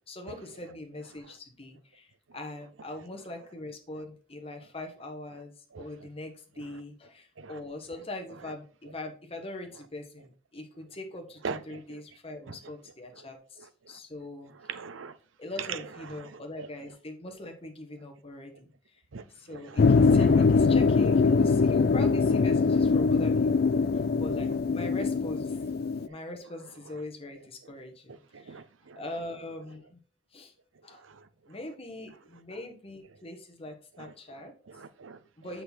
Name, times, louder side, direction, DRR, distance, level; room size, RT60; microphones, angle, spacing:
voice 1, 0.1-14.5 15.4-19.0 19.3-25.6 26.1-28.6 28.9-30.0 30.3-30.5 30.8-31.0 31.5-34.5 35.4-35.6, left 2 dB, 30° left, 1.4 m, -42 dB
voice 2, 11.4-11.8 14.7-15.1 15.7-15.8 19.1-19.2 20.0-20.1 28.5-29.0 34.7-35.2, right 5 dB, 85° right, 0.6 m, -38 dB
sound 1, 19.8-26.1, left 4 dB, 50° left, 0.4 m, -22 dB
6.7 x 5.8 x 4.3 m
head